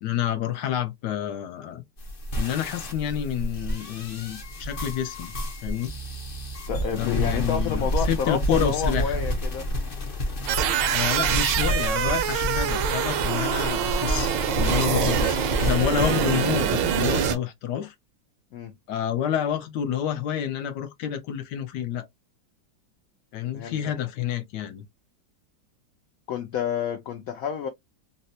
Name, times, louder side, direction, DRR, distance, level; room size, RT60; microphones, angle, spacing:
voice 1, 0.0-1.8 2.4-5.3 5.6-5.9 6.9-9.2 10.9-17.9 18.9-22.1 23.3-24.8, left 10 dB, 70° left, 1.1 m, -29 dB
sound 1, 2.0-16.3, equal, 40° left, 0.7 m, -30 dB
voice 2, 6.7-9.7 14.9-15.1 18.5-18.7 23.5-23.8 26.3-27.7, left 7 dB, 85° left, 0.7 m, -29 dB
sound 2, 10.5-17.4, right 9 dB, 75° right, 1.3 m, -25 dB
4.1 x 2.1 x 2.6 m
omnidirectional pair, 2.0 m